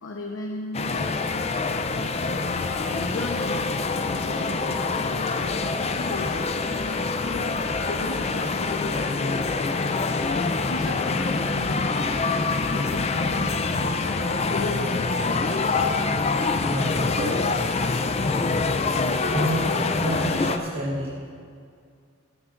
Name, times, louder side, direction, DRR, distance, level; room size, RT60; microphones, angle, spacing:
voice 1, 0.0-2.0 2.7-3.8 4.1-6.4 6.8-10.4 10.7-11.9 12.7-15.8 18.4-18.8, left 1 dB, 75° left, 0 dB, 0.9 m, -36 dB
sound 1, 0.7-20.6, left 3 dB, 30° left, 0.5 m, -25 dB
voice 2, 16.6-17.6 18.8-19.0 19.3-21.3, equal, 80° right, -6 dB, 1.5 m, -29 dB
16.5 x 13.5 x 2.6 m, 2.3 s
head